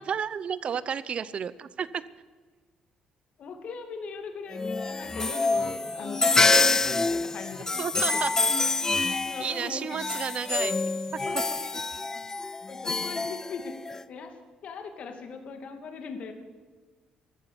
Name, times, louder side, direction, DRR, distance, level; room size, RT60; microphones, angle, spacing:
voice 1, 0.0-2.0 7.8-8.3 9.4-10.8 11.1-11.4, right 7 dB, 50° right, 17 dB, 0.8 m, -32 dB
voice 2, 3.4-8.3 9.2-9.9 11.3-11.6 12.7-13.8 14.1-14.4 14.6-16.3, left 5 dB, 60° left, 6 dB, 2.5 m, -39 dB
sound 1, 4.5-14.0, left 3 dB, 20° left, 0.5 m, -27 dB
14.5 x 13.0 x 7.1 m, 1.4 s
supercardioid pair, 75°, 2 cm